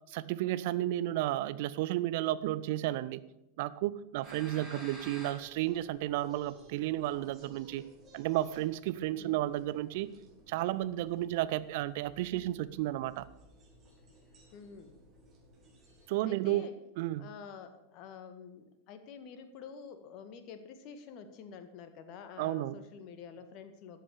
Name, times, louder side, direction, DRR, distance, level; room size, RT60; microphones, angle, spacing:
voice 1, 0.1-3.2 3.6-7.8 8.1-10.1 10.5-13.3 16.1-16.7 17.0-17.3 22.4-22.8, right 15 dB, 50° right, 16 dB, 0.6 m, -32 dB
sound 1, 4.2-16.1, right 1 dB, 25° right, 4.6 m, -55 dB
voice 2, 4.5-4.9 9.2-9.4 14.5-14.9 16.2-16.7 17.2-24.0, left 6 dB, 40° left, 8 dB, 1.7 m, -48 dB
13.5 x 8.5 x 6.8 m, 0.93 s
figure-of-eight pair, 90°, 0 cm